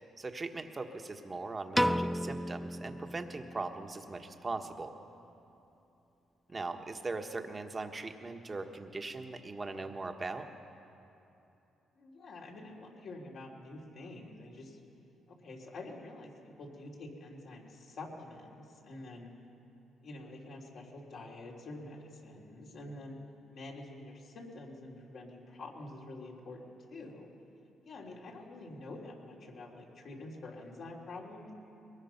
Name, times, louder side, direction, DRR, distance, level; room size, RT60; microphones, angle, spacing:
voice 1, 0.2-4.9 6.5-10.5, right 3 dB, 30° right, 5 dB, 1.3 m, -40 dB
Piano, 1.7-4.0, equal, ahead, 0.4 m, -33 dB
voice 2, 11.9-14.8 15.3-16.3 16.6-19.3 20.0-23.2 23.5-27.3 27.8-31.5, left 2 dB, 65° left, -1 dB, 3.3 m, -47 dB
22.0 x 20.0 x 5.9 m, 2.9 s
cardioid pair, 90°, 0 cm